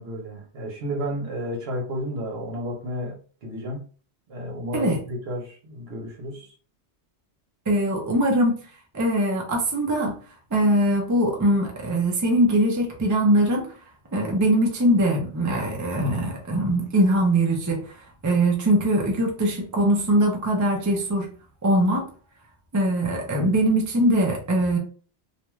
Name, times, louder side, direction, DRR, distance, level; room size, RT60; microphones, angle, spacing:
voice 1, 0.0-3.1 3.4-3.8 4.3-6.5, equal, 65° right, 0 dB, 1.0 m, -32 dB
voice 2, 7.7-8.6 8.9-10.2 10.5-13.7 14.1-17.8 18.2-21.3 21.6-22.1 22.7-24.8, right 1 dB, 20° right, 0 dB, 0.5 m, -22 dB
2.5 x 2.3 x 3.0 m, 0.40 s
omnidirectional pair, 1.1 m